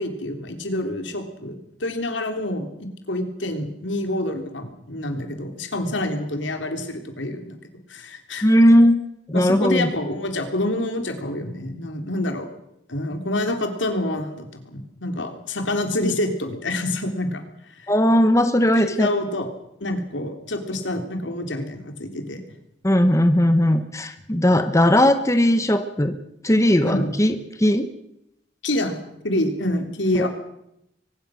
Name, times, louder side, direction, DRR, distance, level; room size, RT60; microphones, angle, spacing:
voice 1, 0.0-7.6 7.9-8.5 9.3-12.5 12.9-17.9 18.7-19.5 19.8-22.4 26.8-27.1 28.6-30.3, left 1 dB, 80° left, 6 dB, 3.4 m, -27 dB
voice 2, 8.4-9.0 9.3-9.9 17.9-19.1 22.8-26.1 26.4-27.9 30.1-30.3, equal, 15° left, 9 dB, 1.1 m, -18 dB
23.0 x 20.5 x 6.4 m, 0.81 s
head